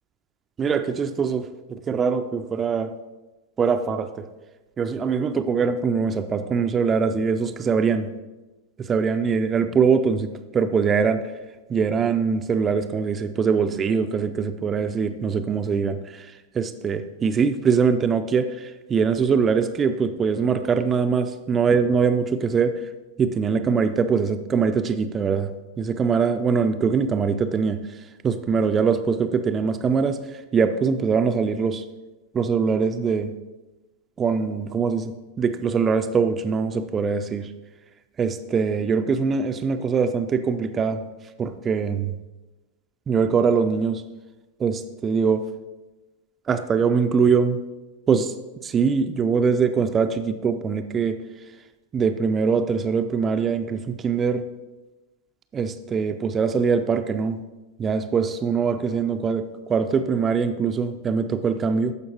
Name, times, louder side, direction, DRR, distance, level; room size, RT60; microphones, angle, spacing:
voice 1, 0.6-2.9 3.6-4.3 4.8-8.1 8.8-11.3 11.7-22.9 23.2-25.5 25.8-28.0 28.2-31.8 32.3-33.3 34.2-37.5 38.2-41.0 41.4-42.1 43.1-44.0 44.6-45.4 46.5-47.6 48.1-48.3 48.6-51.2 51.9-54.5 55.5-57.4 57.8-61.9, right 5 dB, 20° right, 8 dB, 0.4 m, -23 dB
13.5 x 5.1 x 2.9 m, 1.1 s
figure-of-eight pair, 90°, 0 cm